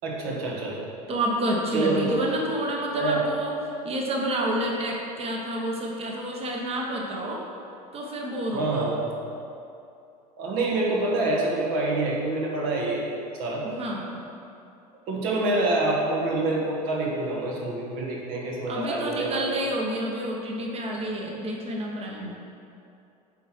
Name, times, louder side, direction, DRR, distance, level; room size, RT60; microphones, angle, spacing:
voice 1, 0.0-0.9 1.7-2.2 2.9-3.3 8.5-9.1 10.4-13.0 13.4-13.7 15.1-19.5, right 2 dB, 55° right, -3 dB, 1.6 m, -26 dB
voice 2, 1.1-3.5 3.8-7.4 7.9-8.9 13.6-14.2 18.7-22.3, right 1 dB, 30° right, -1 dB, 1.2 m, -29 dB
7.9 x 4.5 x 4.6 m, 2.7 s
hypercardioid pair, 80°, 21 cm